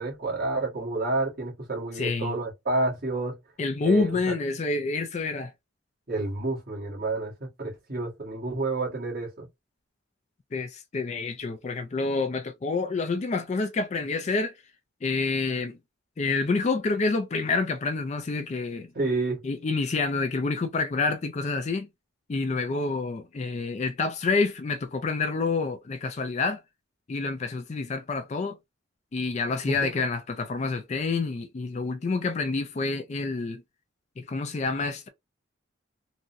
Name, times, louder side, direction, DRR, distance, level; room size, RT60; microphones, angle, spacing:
voice 1, 0.0-3.4 3.8-4.2 6.1-9.5 18.9-19.4 29.7-29.9, right 2 dB, 45° right, 1.4 m, -29 dB
voice 2, 2.0-2.4 3.6-5.5 10.5-14.6 15.0-15.8 16.2-18.9 19.4-21.9 22.3-26.6 27.1-28.6 29.1-33.6 34.2-35.1, left 3 dB, 35° left, 0.3 m, -28 dB
3.7 x 2.1 x 2.6 m
head